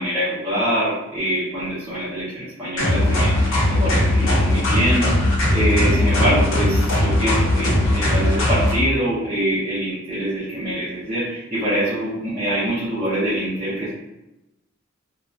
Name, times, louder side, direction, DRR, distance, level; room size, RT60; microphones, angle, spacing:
voice 1, 0.0-13.9, right 1 dB, 20° right, -14 dB, 0.7 m, -24 dB
sound 1, 2.8-8.7, left 1 dB, 75° left, 0.7 m, -19 dB
2.8 x 2.2 x 2.4 m, 0.95 s
head